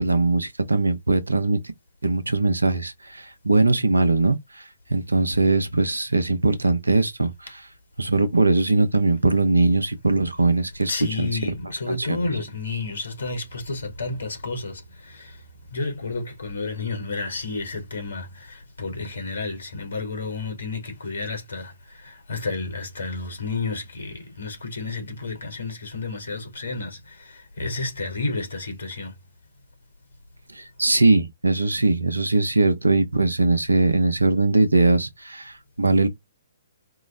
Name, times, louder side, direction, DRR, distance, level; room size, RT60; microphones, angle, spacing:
voice 1, 0.0-1.6 2.0-4.6 4.9-7.3 8.0-10.9 11.2-11.3 11.9-12.2 30.5-36.1, right 2 dB, 90° right, 0.8 m, -21 dB
voice 2, 10.7-29.2, left 3 dB, 70° left, 2.3 m, -31 dB
4.8 x 2.0 x 3.8 m
figure-of-eight pair, 130°, 0 cm